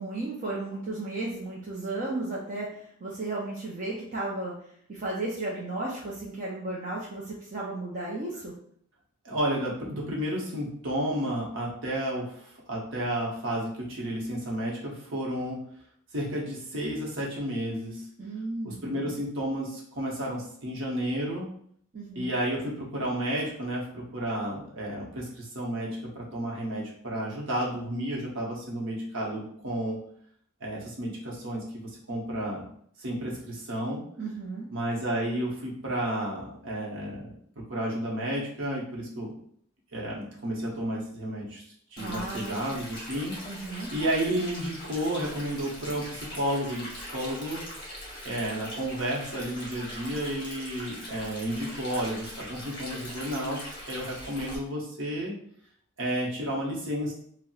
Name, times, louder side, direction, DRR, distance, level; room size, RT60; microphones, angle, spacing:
voice 1, 0.0-4.5 4.9-8.5 18.2-19.1 21.9-22.3 34.2-34.7 42.0-42.7 43.4-43.9, right 2 dB, 35° right, -5 dB, 0.5 m, -34 dB
voice 2, 9.2-15.6 16.1-18.0 18.6-21.5 22.2-30.0 30.6-32.6 33.0-34.0 34.7-39.3 39.9-41.6 41.9-43.4 43.9-47.6 48.2-55.3 56.0-57.1, right 1 dB, 60° right, -3 dB, 0.8 m, -32 dB
Stream, 42.0-54.6, left 1 dB, 20° left, 0.8 m, -41 dB
4.1 x 2.0 x 2.3 m, 0.63 s
head